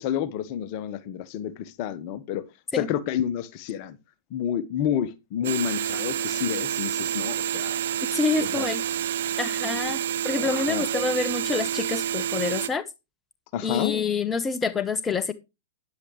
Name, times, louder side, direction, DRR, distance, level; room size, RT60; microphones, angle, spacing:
voice 1, 0.0-2.4 2.8-4.0 4.3-7.8 8.4-8.7 10.4-10.8 13.5-13.9, left 10 dB, 40° left, 1.1 m, -29 dB
sound 1, 5.4-12.7, right 10 dB, 55° right, 1.1 m, -28 dB
voice 2, 8.1-8.8 9.4-12.8 13.6-15.3, left 4 dB, 15° left, 1.0 m, -27 dB
13.5 x 9.9 x 3.2 m
figure-of-eight pair, 105°, 0 cm